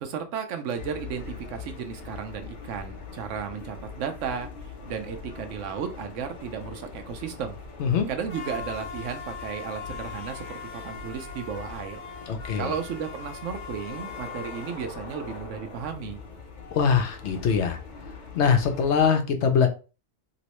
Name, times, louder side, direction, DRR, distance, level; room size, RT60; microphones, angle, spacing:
voice 1, 0.0-4.5 4.9-7.6 8.1-12.0 12.6-16.2, right 7 dB, 90° right, 7 dB, 1.0 m, -34 dB
sound 1, 0.8-19.1, left 5 dB, 45° left, 0.8 m, -40 dB
voice 2, 12.3-12.7 16.7-17.8 18.3-19.7, left 6 dB, 70° left, 6 dB, 1.0 m, -22 dB
3.0 x 3.0 x 2.9 m, 0.33 s
omnidirectional pair, 1.2 m